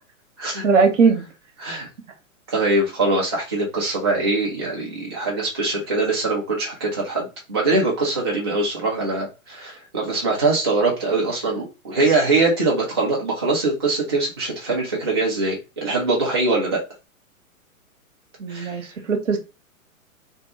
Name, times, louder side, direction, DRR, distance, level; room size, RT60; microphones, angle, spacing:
voice 1, 0.6-1.2 18.4-19.4, right 5 dB, 60° right, 5 dB, 0.8 m, -19 dB
voice 2, 2.5-16.8 18.5-18.9, right 3 dB, 20° right, -3 dB, 0.3 m, -22 dB
2.5 x 2.2 x 2.8 m, 0.29 s
figure-of-eight pair, 115°, 42 cm